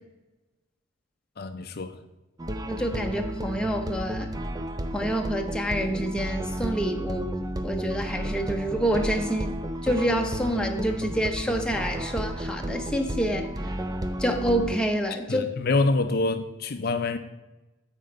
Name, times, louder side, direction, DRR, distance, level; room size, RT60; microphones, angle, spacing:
voice 1, 1.4-2.0 15.3-17.2, left 3 dB, 50° left, 8 dB, 0.5 m, -26 dB
sound 1, 2.4-14.8, equal, 20° right, 0.5 m, -32 dB
voice 2, 2.7-4.3 4.9-7.3 7.6-9.6 9.8-13.5 14.2-15.5, right 1 dB, 5° left, 3 dB, 0.8 m, -27 dB
9.0 x 4.5 x 6.6 m, 1.0 s
head